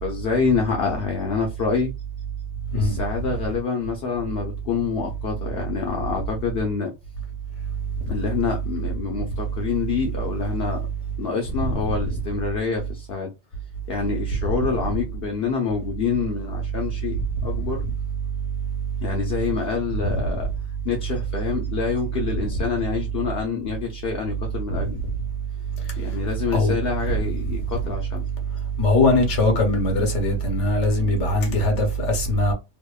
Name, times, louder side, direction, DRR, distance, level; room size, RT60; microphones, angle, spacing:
voice 1, 0.0-1.9 2.7-6.9 8.1-10.8 11.2-13.3 13.9-17.8 19.0-20.5 20.8-25.0 26.0-28.3, left 5 dB, 60° left, 0.7 m, -27 dB
voice 2, 28.8-32.5, left 1 dB, 80° left, 1.1 m, -20 dB
2.7 x 2.1 x 2.2 m
omnidirectional pair, 1.2 m